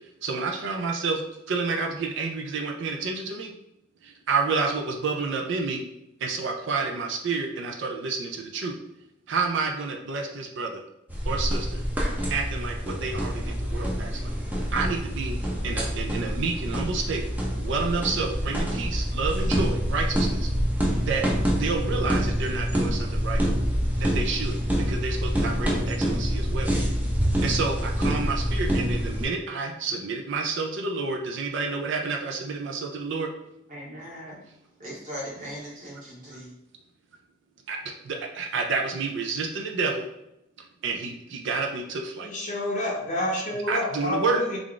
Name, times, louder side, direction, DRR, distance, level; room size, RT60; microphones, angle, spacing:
voice 1, 0.2-3.5 4.0-5.8 6.2-8.7 9.3-10.8 11.2-11.8 12.3-14.3 14.7-15.4 15.6-17.2 17.6-20.5 21.0-21.3 21.5-23.4 24.0-26.7 27.4-33.3 37.7-37.8 38.0-40.1 40.8-42.3 43.7-44.4, right 4 dB, 65° right, 2 dB, 0.4 m, -29 dB
sound 1, 11.1-29.3, equal, 10° right, 0.5 m, -26 dB
voice 2, 33.7-34.4 34.8-36.5, equal, 40° right, -6 dB, 1.5 m, -39 dB
voice 3, 42.2-44.6, left 1 dB, 40° left, -1 dB, 0.6 m, -29 dB
3.3 x 2.4 x 3.7 m, 0.83 s
head